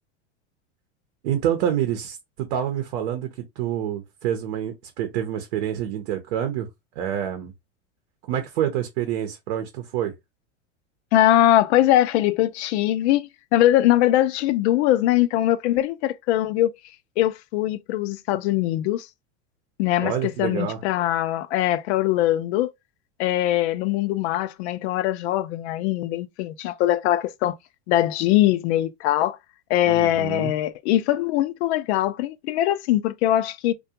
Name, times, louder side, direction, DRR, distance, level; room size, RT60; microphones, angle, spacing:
voice 1, 1.2-3.3 3.6-6.7 7.0-7.5 8.3-10.1 20.0-20.8 29.9-30.5, right 10 dB, 65° right, 0.7 m, -27 dB
voice 2, 11.1-16.7 17.2-19.1 19.8-20.1 20.4-22.7 23.2-27.5 27.9-29.4 29.7-33.7, left 13 dB, 65° left, 0.5 m, -21 dB
2.3 x 2.3 x 2.7 m
hypercardioid pair, 110°, 36 cm